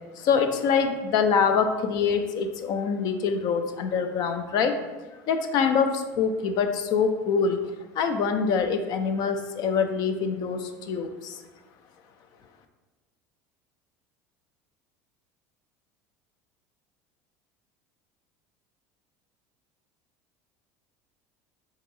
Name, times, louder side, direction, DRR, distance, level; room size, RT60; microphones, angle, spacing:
voice 1, 0.2-4.8 5.3-7.6 7.9-11.4, left 6 dB, 60° left, 7 dB, 0.3 m, -25 dB
2.9 x 2.7 x 2.6 m, 1.2 s
supercardioid pair, 95°, 8 cm